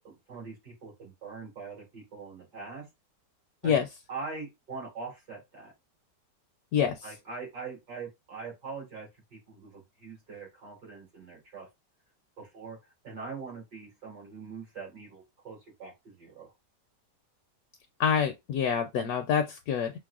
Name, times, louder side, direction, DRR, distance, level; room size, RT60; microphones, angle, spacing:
voice 1, 0.0-2.8 3.6-3.8 4.1-5.7 7.0-11.7 12.4-12.8 13.0-16.5, right 4 dB, 75° right, 3.2 m, -42 dB
voice 2, 6.7-7.1 18.0-19.9, left 7 dB, 70° left, 1.0 m, -26 dB
6.0 x 2.1 x 2.3 m
omnidirectional pair, 1.8 m